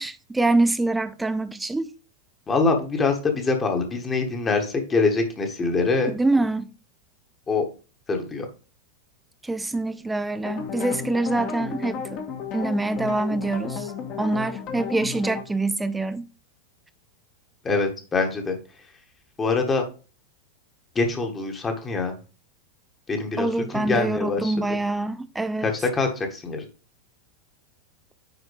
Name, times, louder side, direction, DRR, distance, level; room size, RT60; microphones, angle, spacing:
voice 1, 0.0-1.9 6.1-6.7 9.4-12.2 12.5-13.9 14.2-16.2 23.4-25.7, right 2 dB, 10° right, 0.6 m, -25 dB
voice 2, 2.5-6.1 7.5-7.7 8.1-8.5 17.6-18.6 19.4-19.8 20.9-22.2 23.1-24.5 25.6-26.7, left 3 dB, 20° left, 1.6 m, -24 dB
sound 1, 10.4-15.4, left 6 dB, 40° left, 1.6 m, -33 dB
9.5 x 4.2 x 3.4 m
figure-of-eight pair, 90°, 0 cm